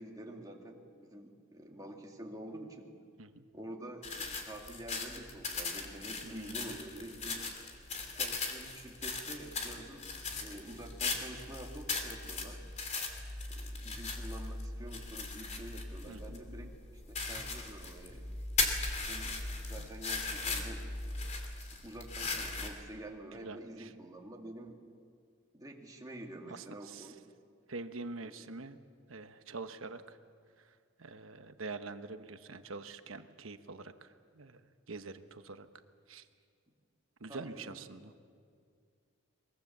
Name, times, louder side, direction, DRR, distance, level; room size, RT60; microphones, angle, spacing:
voice 1, 0.0-2.9 3.5-7.4 8.1-12.6 13.5-16.7 17.1-18.3 19.1-19.4 19.6-20.9 21.8-24.8 25.5-27.1 28.2-28.3 37.2-37.8, right 1 dB, 20° right, 0 dB, 2.2 m, -47 dB
sound 1, 4.0-22.7, left 3 dB, 35° left, 3.0 m, -38 dB
voice 2, 6.2-6.8 16.1-16.7 19.8-19.9 23.3-23.9 26.5-27.1 27.7-28.8 29.1-30.2 31.0-34.6 34.9-35.7 36.1-36.2 37.2-38.1, right 3 dB, 75° right, 9 dB, 1.1 m, -45 dB
23.0 x 22.0 x 7.3 m, 2.2 s
head